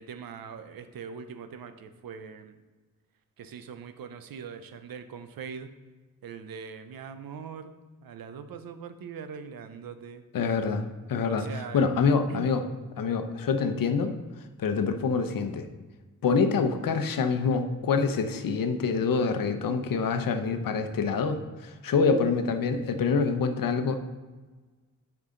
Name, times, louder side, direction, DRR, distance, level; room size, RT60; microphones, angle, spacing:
voice 1, 0.0-2.6 3.4-5.7 6.2-7.7 8.0-10.2 11.4-11.9 12.3-12.5, right 6 dB, 90° right, 9 dB, 0.7 m, -41 dB
voice 2, 10.3-11.5 11.7-12.6 13.0-14.1 14.6-15.7 16.2-24.0, left 5 dB, 80° left, 7 dB, 0.8 m, -26 dB
9.4 x 4.8 x 3.8 m, 1.3 s
wide cardioid pair, 105°, 34 cm